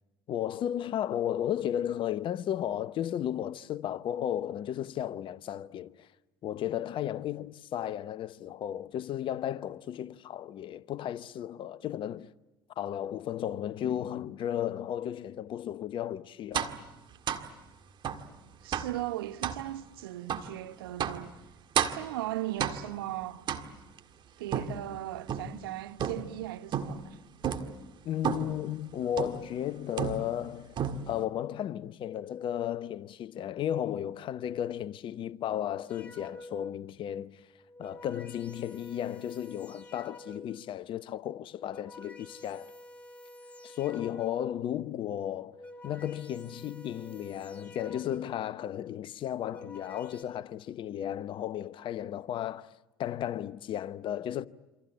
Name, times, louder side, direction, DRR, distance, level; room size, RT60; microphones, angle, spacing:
voice 1, 0.3-6.1 6.4-12.3 12.8-16.7 28.0-30.8 31.1-37.4 37.8-42.7 43.6-45.6 45.8-52.7 53.0-54.5, left 11 dB, 40° left, 0.9 m, -34 dB
sound 1, 16.5-16.8 17.3-17.5 18.0-18.3 18.7-19.0 19.4-19.6 20.3-20.5 21.0-21.3 21.7-22.1 22.6-23.0 23.5-24.0 24.5-25.6 26.0-26.4 26.7-27.1 27.4-27.7 28.2-28.6 29.2-29.5 30.0-30.5 30.8-31.2, right 8 dB, 40° right, 1.9 m, -32 dB
voice 2, 18.6-21.3 21.9-23.4 24.4-27.2, right 15 dB, 70° right, 1.0 m, -37 dB
sound 2, 35.9-36.8 37.5-40.7 41.4-44.6 45.3-48.5 49.2-50.2, left 1 dB, 10° left, 4.0 m, -49 dB
28.0 x 26.0 x 8.1 m
figure-of-eight pair, 70°, 12 cm